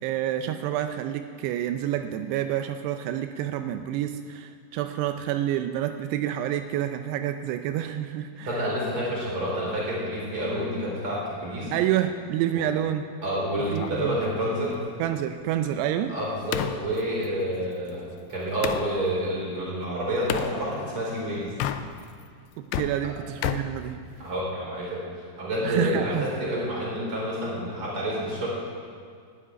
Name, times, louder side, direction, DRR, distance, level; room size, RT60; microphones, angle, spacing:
voice 1, 0.0-8.6 11.7-13.0 13.7-14.2 15.0-16.2 22.6-24.0 25.6-26.3, right 11 dB, 85° right, 8 dB, 2.7 m, -28 dB
voice 2, 8.4-11.7 12.5-12.7 13.2-14.8 16.1-21.6 23.0-23.1 24.2-25.1 25.4-28.5, equal, 30° right, -5 dB, 5.2 m, -29 dB
sound 1, 13.6-18.9 20.3-20.6 21.5-22.2 22.5-24.5, left 10 dB, 85° left, 2.7 m, -34 dB
12.0 x 8.7 x 9.8 m, 2.2 s
omnidirectional pair, 4.7 m